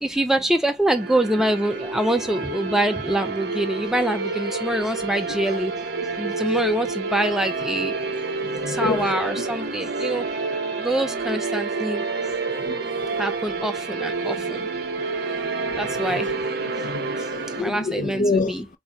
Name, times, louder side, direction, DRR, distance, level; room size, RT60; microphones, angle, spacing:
voice 1, 0.0-5.7 6.2-8.3 8.6-10.2 10.8-12.0 13.2-14.6 15.8-16.3 17.6-18.7, right 1 dB, 5° right, 0.4 m, -25 dB
sound 1, 0.9-17.6, right 4 dB, 55° right, 0.7 m, -28 dB
voice 2, 5.3-5.6 8.5-9.4 12.5-12.9 15.6-15.7 16.1-16.2 16.6-18.6, left 2 dB, 45° left, 0.6 m, -28 dB
4.6 x 2.3 x 4.1 m
head